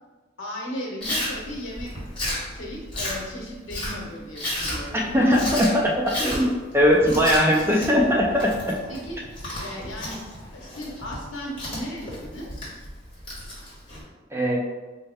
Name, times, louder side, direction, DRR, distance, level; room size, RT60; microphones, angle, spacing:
voice 1, 0.4-1.9 2.5-5.7 8.9-9.2 9.6-10.2 10.5-12.5, equal, 75° left, -2 dB, 0.9 m, -36 dB
Chewing mastication, 1.0-14.0, left 1 dB, 25° left, 1.1 m, -33 dB
voice 2, 4.9-5.9 6.2-8.5 14.3-14.6, equal, 10° right, -2 dB, 0.4 m, -20 dB
4.3 x 2.1 x 3.4 m, 1.2 s
head